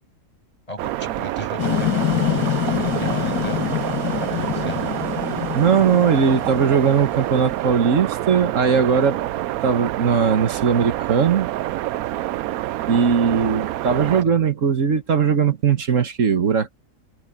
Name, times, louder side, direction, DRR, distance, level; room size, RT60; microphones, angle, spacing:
voice 1, 0.7-3.7 4.2-4.9 14.0-14.4, left 1 dB, 20° left, 8.1 m, -36 dB
sound 1, 0.8-14.2, right 14 dB, 70° right, 0.9 m, -27 dB
sound 2, 1.6-7.6, left 13 dB, 90° left, 1.8 m, -26 dB
voice 2, 5.5-9.2 9.6-11.5 12.8-16.7, right 6 dB, 50° right, 1.6 m, -19 dB
omnidirectional pair, 1.7 m